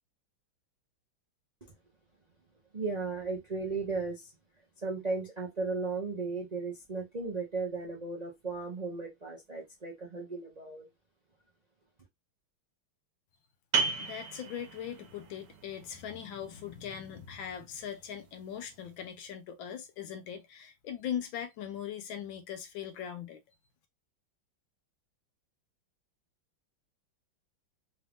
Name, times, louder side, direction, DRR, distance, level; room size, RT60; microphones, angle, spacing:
voice 1, 2.7-4.3 4.8-10.8, right 4 dB, 55° right, 0.4 m, -35 dB
sound 1, 13.7-19.1, right 5 dB, 70° right, 1.5 m, -37 dB
voice 2, 14.0-23.4, left 9 dB, 70° left, 1.4 m, -40 dB
4.1 x 2.6 x 3.4 m
omnidirectional pair, 2.3 m